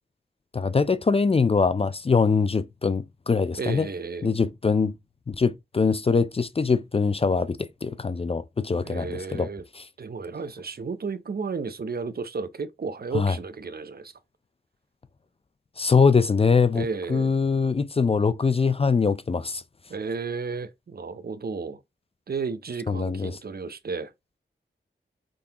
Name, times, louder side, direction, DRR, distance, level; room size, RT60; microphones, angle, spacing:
voice 1, 0.5-3.9 4.2-4.9 5.3-9.5 9.8-9.9 13.1-13.3 15.8-19.6 22.9-23.4, left 5 dB, 30° left, 0.4 m, -23 dB
voice 2, 3.6-4.3 8.8-9.6 10.0-14.1 16.7-17.4 19.9-21.8 22.3-24.1, right 4 dB, 55° right, 0.6 m, -33 dB
4.6 x 3.8 x 2.8 m
cardioid pair, 60°, 19 cm